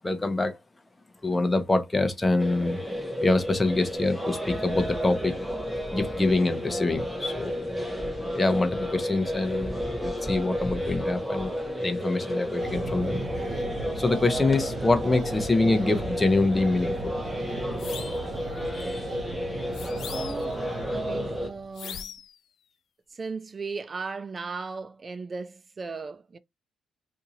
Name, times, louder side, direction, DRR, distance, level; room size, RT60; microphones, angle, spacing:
voice 1, 0.0-0.6 1.2-2.8 3.2-5.4 5.9-7.7 8.3-11.5 11.8-13.2 13.9-17.2 17.9-18.2 18.7-19.1, left 2 dB, 15° left, 0.9 m, -25 dB
sound 1, 2.4-21.5, equal, 5° right, 1.0 m, -32 dB
sound 2, 12.6-21.8, right 2 dB, 50° right, 0.9 m, -37 dB
sound 3, 17.8-18.3 19.7-20.6 21.8-22.4, left 8 dB, 65° left, 0.4 m, -40 dB
voice 2, 20.0-20.6 20.9-22.1 23.1-26.4, right 4 dB, 35° right, 0.4 m, -37 dB
2.8 x 2.7 x 3.8 m
cardioid pair, 90°, 0 cm